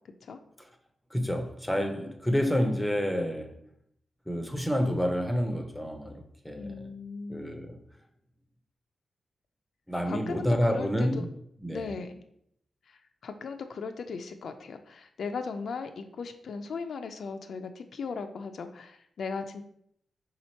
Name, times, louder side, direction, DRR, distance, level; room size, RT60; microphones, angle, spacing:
voice 1, 1.1-3.6 4.3-6.9 7.3-7.8 9.9-11.3 11.6-12.0, equal, ahead, 0.6 m, -29 dB
voice 2, 6.6-7.4 10.1-11.3 11.7-12.2 12.9-19.6, left 5 dB, 75° left, 0.3 m, -37 dB
3.4 x 2.9 x 4.3 m
cardioid pair, 95°, 0 cm